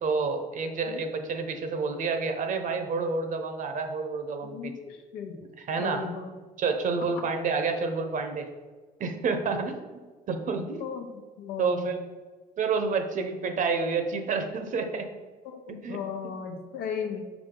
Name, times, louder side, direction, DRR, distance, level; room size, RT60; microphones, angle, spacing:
voice 1, 0.0-4.7 5.6-6.0 6.6-8.5 9.0-10.0 10.3-10.8 11.6-11.9 12.6-15.1 15.7-16.0, right 4 dB, 50° right, 6 dB, 0.9 m, -29 dB
voice 2, 4.4-5.4 5.8-6.3 7.1-7.3 10.8-12.1 15.4-17.2, left 6 dB, 90° left, 4 dB, 1.0 m, -36 dB
6.1 x 5.0 x 3.8 m, 1.3 s
cardioid pair, 110°, 17 cm